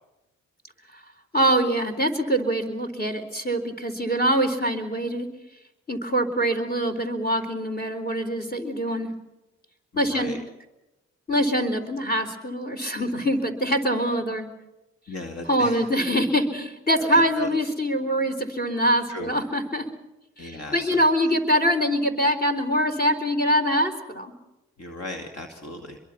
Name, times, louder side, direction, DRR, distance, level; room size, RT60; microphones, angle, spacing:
voice 1, 1.3-5.3 5.9-9.1 10.0-10.4 11.3-14.5 15.5-19.9 20.4-24.3, equal, 30° left, 6 dB, 4.0 m, -24 dB
voice 2, 9.9-10.4 15.1-15.9 17.1-17.5 19.1-19.3 20.4-21.0 24.8-26.0, left 2 dB, 55° left, 4 dB, 2.7 m, -37 dB
25.5 x 23.0 x 5.9 m, 0.95 s
supercardioid pair, 50°, 30 cm